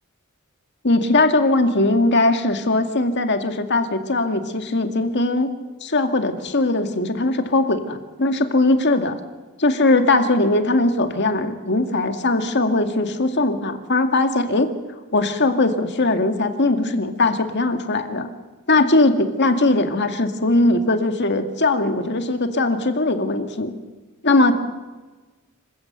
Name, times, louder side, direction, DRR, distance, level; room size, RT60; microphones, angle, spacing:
voice 1, 0.8-5.5 5.8-9.2 9.6-14.7 15.1-18.3 18.7-23.7 24.2-24.5, left 2 dB, 55° left, 7 dB, 2.1 m, -20 dB
26.5 x 16.0 x 8.0 m, 1.3 s
head